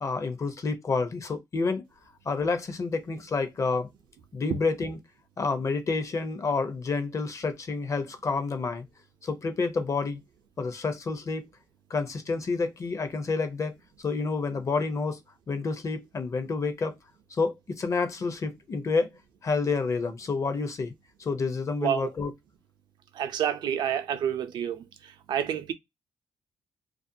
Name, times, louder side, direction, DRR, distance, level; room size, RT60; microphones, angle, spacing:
voice 1, 0.0-1.8 2.3-3.9 4.3-5.0 5.4-8.9 9.2-10.2 10.6-11.5 11.9-13.7 14.0-15.2 15.5-17.0 17.3-19.1 19.4-20.9 21.2-22.3, left 4 dB, 40° left, 0.6 m, -29 dB
voice 2, 23.2-24.8 25.3-25.7, right 9 dB, 80° right, 0.5 m, -28 dB
2.4 x 2.2 x 2.6 m
cardioid pair, 80°, 8 cm